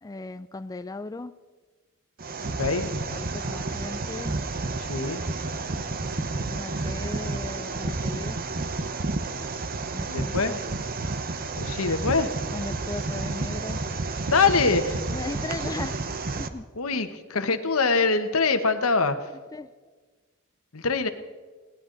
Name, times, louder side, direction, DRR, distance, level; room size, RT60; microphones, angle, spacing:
voice 1, 0.0-1.3 3.1-4.3 6.4-8.4 9.9-10.6 12.5-13.8 15.1-16.0 16.3-16.6 19.5-19.7, left 2 dB, 15° left, 11 dB, 0.4 m, -37 dB
sound 1, 2.2-16.5, right 3 dB, 45° right, 0.9 m, -31 dB
voice 2, 4.9-5.2 9.3-9.4 10.1-10.5 11.5-12.3 14.3-15.0 16.8-19.3 20.7-21.1, left 4 dB, 85° left, 9 dB, 1.2 m, -24 dB
20.0 x 18.0 x 3.9 m, 1.4 s
head